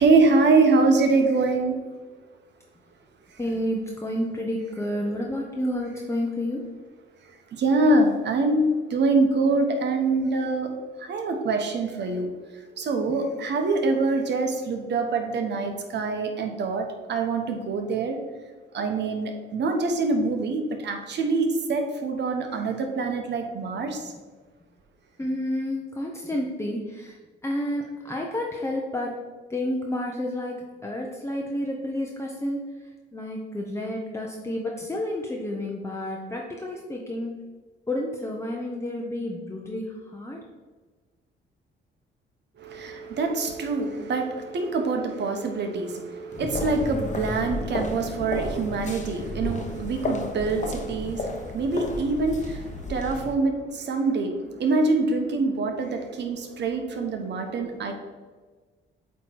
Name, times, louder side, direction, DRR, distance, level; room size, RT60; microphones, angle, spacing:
voice 1, 0.0-1.8 7.6-10.7 11.0-12.3 12.8-18.2 18.7-24.0 42.6-51.2 51.5-52.6 52.9-54.3 54.6-57.9, right 3 dB, 60° right, 4 dB, 1.1 m, -24 dB
voice 2, 3.4-6.6 25.2-27.2 27.4-29.2 29.5-32.6 33.1-37.4 37.9-39.9 40.1-40.4, left 1 dB, 15° left, -1 dB, 0.8 m, -30 dB
sound 1, 46.3-53.3, left 2 dB, 35° left, 1.0 m, -32 dB
8.1 x 3.1 x 4.6 m, 1.3 s
cardioid pair, 90°, 20 cm